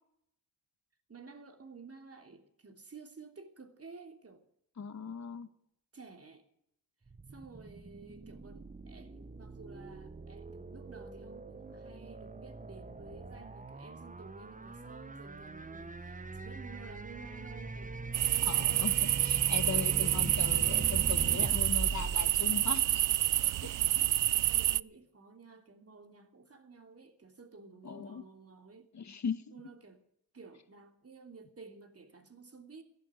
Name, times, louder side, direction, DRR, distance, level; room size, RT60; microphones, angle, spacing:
voice 1, 1.1-4.4 5.9-6.4 7.3-18.5 19.8-20.2 23.6-28.9 29.5-30.0 30.3-32.8, right 4 dB, 40° right, 5 dB, 3.2 m, -53 dB
voice 2, 4.8-5.5 18.4-23.0 27.8-28.2 28.9-29.5, left 6 dB, 45° left, 13 dB, 1.5 m, -39 dB
sound 1, 7.1-23.3, right 3 dB, 20° right, 1.3 m, -42 dB
sound 2, 18.1-24.8, right 13 dB, 55° right, 0.5 m, -28 dB
14.5 x 11.0 x 8.2 m, 0.74 s
supercardioid pair, 55°, 38 cm